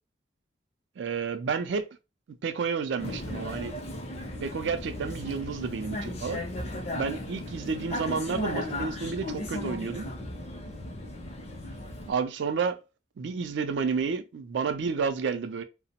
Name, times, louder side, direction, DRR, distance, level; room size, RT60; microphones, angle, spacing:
voice 1, 1.0-1.8 2.4-3.7 4.4-6.4 6.9-10.1 12.1-12.8 13.2-15.6, right 5 dB, 75° right, 0.4 m, -30 dB
Vehicle, 3.0-12.1, left 1 dB, 35° left, 0.5 m, -36 dB
2.8 x 2.0 x 2.8 m
head